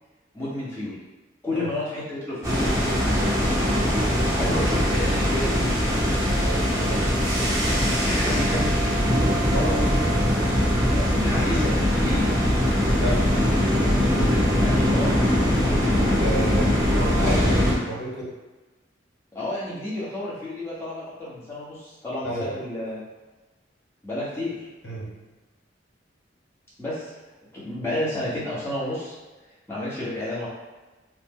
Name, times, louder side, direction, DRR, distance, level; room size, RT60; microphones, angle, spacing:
voice 1, 0.3-1.0 1.4-6.0 8.0-8.7 10.9-12.3 14.6-15.2 19.3-23.0 24.0-24.7 26.8-27.1 27.5-29.1 29.7-30.5, left 1 dB, 15° left, -9 dB, 0.9 m, -31 dB
sound 1, 2.4-17.7, equal, 20° right, 0.8 m, -21 dB
voice 2, 6.4-7.1 9.5-10.0 13.0-13.2 16.2-18.3 22.2-22.6 24.8-25.1, equal, 80° left, -5 dB, 1.1 m, -31 dB
3.1 x 2.0 x 3.6 m, 1.2 s
head